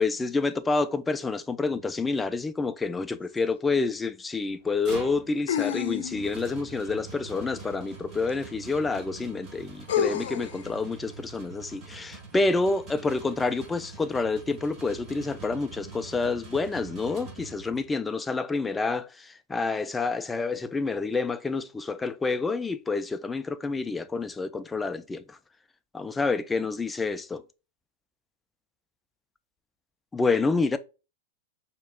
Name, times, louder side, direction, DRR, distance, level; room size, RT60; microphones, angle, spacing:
voice 1, 0.0-25.4 25.9-27.4 30.1-30.8, left 3 dB, 10° left, 0.3 m, -28 dB
sound 1, 3.4-3.5 5.5-6.4 8.3-8.4 9.9-10.6, left 9 dB, 75° left, 0.5 m, -28 dB
sound 2, 4.5-18.0, right 4 dB, 30° right, 1.2 m, -45 dB
4.4 x 2.9 x 2.2 m
supercardioid pair, 140°, 0 cm